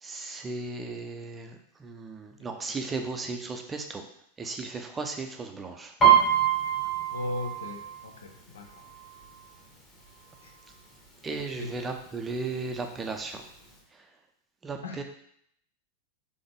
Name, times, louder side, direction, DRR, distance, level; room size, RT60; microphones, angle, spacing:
voice 1, 0.0-4.0 4.4-5.9 11.2-13.4 13.9-14.1 14.6-15.0, right 3 dB, 15° right, 4 dB, 0.5 m, -36 dB
Piano, 6.0-9.7 10.0-10.4 10.8-11.4 12.0-12.1 12.3-13.3 13.7-13.8, right 8 dB, 20° left, 1.3 m, -25 dB
voice 2, 7.1-8.8 10.4-10.5 11.6-11.7 14.8-15.0, left 2 dB, 70° left, 2 dB, 0.7 m, -37 dB
3.9 x 3.4 x 3.4 m, 0.70 s
figure-of-eight pair, 90°, 0 cm